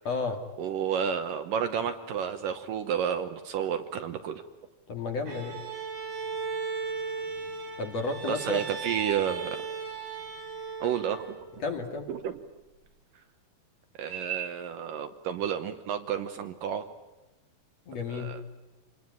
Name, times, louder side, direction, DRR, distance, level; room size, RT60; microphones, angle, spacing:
voice 1, 0.0-0.5 4.9-5.6 7.8-8.6 11.6-12.1 17.9-18.3, left 3 dB, 45° left, 4 dB, 2.7 m, -32 dB
voice 2, 0.6-4.4 8.3-9.6 10.8-11.4 12.1-12.4 13.9-16.9 18.1-18.4, right 8 dB, 70° right, 8 dB, 2.4 m, -31 dB
Bowed string instrument, 5.3-11.6, right 5 dB, 90° right, 7.5 m, -36 dB
27.5 x 20.5 x 9.5 m, 1.1 s
omnidirectional pair, 4.7 m